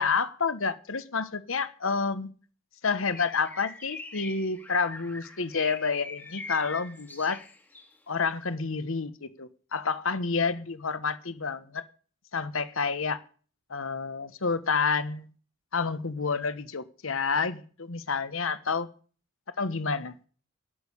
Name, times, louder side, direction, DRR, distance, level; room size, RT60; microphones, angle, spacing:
voice 1, 0.0-2.3 2.8-7.4 8.1-11.8 12.3-13.2 13.7-15.3 15.7-18.9 19.6-20.1, left 5 dB, 70° left, 1.1 m, -29 dB
Bird, 3.0-8.0, left 2 dB, 10° left, 1.6 m, -43 dB
12.5 x 6.7 x 9.8 m
head